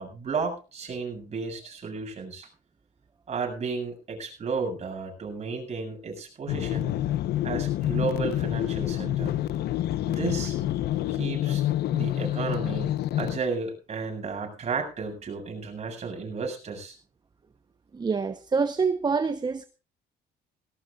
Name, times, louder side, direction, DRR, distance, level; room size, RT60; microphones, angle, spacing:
voice 1, 0.0-2.5 3.3-7.0 7.4-9.3 10.1-10.6 11.1-11.6 11.9-16.9, right 4 dB, 40° right, 7.8 m, -33 dB
sound 1, 6.5-13.4, left 13 dB, 75° left, 1.1 m, -27 dB
voice 2, 17.9-19.6, right 5 dB, 25° right, 1.0 m, -26 dB
18.5 x 18.0 x 2.5 m
cardioid pair, 110°, 17 cm